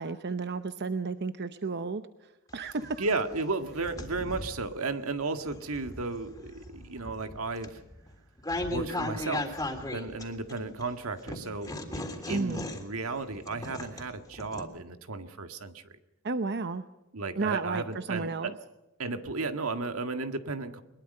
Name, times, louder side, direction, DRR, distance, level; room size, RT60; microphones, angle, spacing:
voice 1, 0.0-2.0 2.5-3.0 12.3-12.7 16.2-16.8 17.4-18.5, right 4 dB, 50° right, 10 dB, 0.8 m, -32 dB
sound 1, 2.5-4.7 5.3-10.8 11.3-14.6, left 1 dB, 15° left, 3.4 m, -37 dB
voice 2, 3.0-7.8 8.7-15.9 17.1-18.5 19.0-20.8, right 3 dB, 80° right, 8 dB, 1.8 m, -34 dB
22.5 x 21.5 x 5.5 m, 0.98 s
head